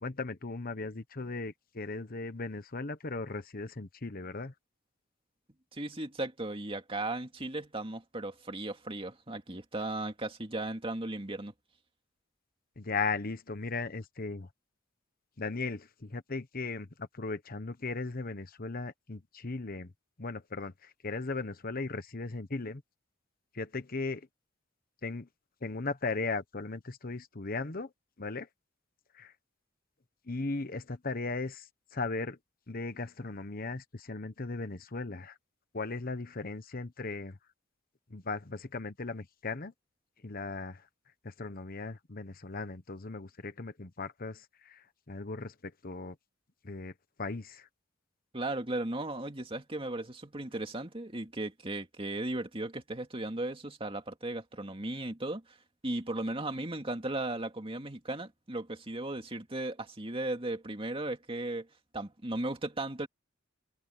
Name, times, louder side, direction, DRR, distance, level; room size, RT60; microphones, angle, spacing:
voice 1, 0.0-4.5 12.8-14.5 15.4-19.9 20.2-22.8 23.5-24.3 25.0-25.3 25.6-27.9 28.2-28.5 29.1-29.3 30.3-32.4 32.7-35.4 35.7-37.4 38.1-39.7 40.2-40.8 41.2-46.1 46.6-46.9 47.2-47.7, left 3 dB, 45° left, 1.1 m, -37 dB
voice 2, 5.7-11.5 48.3-55.6 55.8-61.7 61.9-63.1, right 2 dB, 25° right, 2.4 m, -36 dB
head